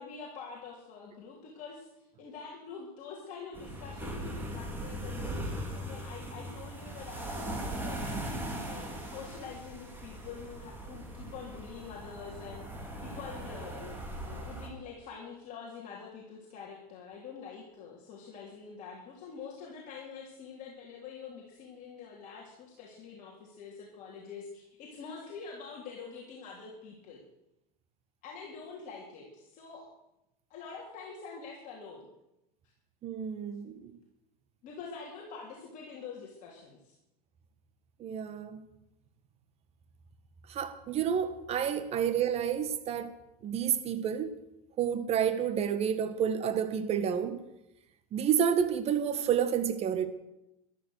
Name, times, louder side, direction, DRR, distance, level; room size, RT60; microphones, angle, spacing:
voice 1, 0.0-8.2 8.6-12.6 13.0-27.2 28.2-29.9 30.5-32.1 34.6-36.9, left 5 dB, 45° left, 3.6 m, -46 dB
sound 1, 3.5-14.7, right 1 dB, 10° right, 3.4 m, -39 dB
voice 2, 33.0-33.9 38.0-38.6 40.5-43.1 43.4-44.4 44.8-47.4 48.1-50.1, right 8 dB, 35° right, 1.6 m, -29 dB
14.0 x 12.5 x 6.6 m
supercardioid pair, 130°, 19 cm